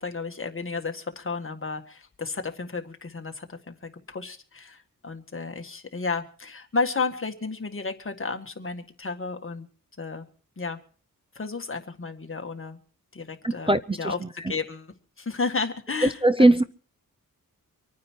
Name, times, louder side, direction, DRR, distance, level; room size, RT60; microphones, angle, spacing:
voice 1, 0.0-9.7 10.0-10.3 10.6-10.8 11.4-12.8 13.1-16.6, left 4 dB, 40° left, 1.8 m, -32 dB
voice 2, 13.4-14.3 16.2-16.6, right 1 dB, 15° right, 0.6 m, -20 dB
25.5 x 9.5 x 4.6 m
wide cardioid pair, 90°, 34 cm